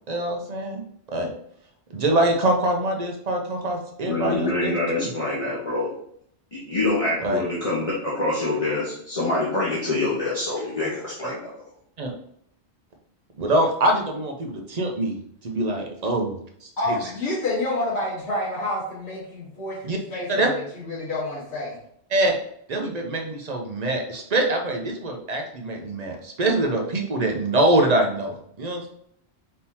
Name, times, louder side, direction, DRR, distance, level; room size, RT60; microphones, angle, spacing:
voice 1, 0.1-0.8 1.1-1.3 1.9-5.1 7.2-7.4 12.0-12.1 13.4-15.2 15.4-16.3 16.6-17.0 19.8-20.0 20.3-20.5 22.1-22.4 22.7-28.9, right 1 dB, 40° right, 2 dB, 0.7 m, -24 dB
voice 2, 4.0-5.9 6.5-11.5, left 2 dB, 35° left, -7 dB, 1.1 m, -25 dB
voice 3, 16.8-21.8, left 2 dB, 75° left, -9 dB, 1.7 m, -28 dB
4.3 x 3.7 x 2.8 m, 0.68 s
omnidirectional pair, 1.1 m